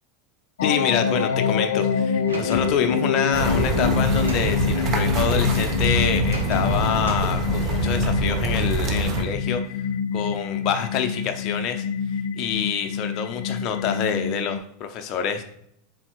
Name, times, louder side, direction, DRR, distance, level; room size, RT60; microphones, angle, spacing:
sound 1, 0.6-14.6, left 6 dB, 80° left, 0.3 m, -26 dB
voice 1, 0.6-9.6 10.1-11.8 12.3-15.4, left 7 dB, 50° left, 6 dB, 0.7 m, -26 dB
Sliding door, 2.2-4.5 6.3-7.3, right 2 dB, 90° right, 0.9 m, -34 dB
sound 2, 3.3-9.2, right 3 dB, 40° right, 1.0 m, -25 dB
4.3 x 3.8 x 3.1 m, 0.72 s
hypercardioid pair, 90°, 0 cm